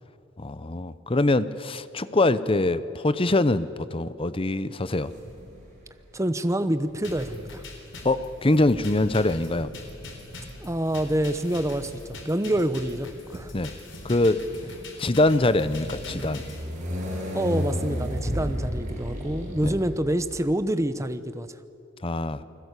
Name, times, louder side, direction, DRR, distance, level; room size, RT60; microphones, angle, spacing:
voice 1, 0.4-5.1 8.0-9.7 13.5-13.7 14.0-14.4 15.0-16.4 19.6-19.7 22.0-22.4, left 2 dB, 25° left, 14 dB, 0.8 m, -23 dB
sound 1, 5.1-5.8 6.9-20.6, equal, 40° right, 7.4 m, -35 dB
voice 2, 6.1-7.6 10.6-13.5 17.3-21.5, right 1 dB, 15° right, 11 dB, 0.9 m, -27 dB
sound 2, 7.0-16.6, left 2 dB, 60° left, 4.0 m, -42 dB
29.0 x 21.0 x 8.3 m, 2.7 s
head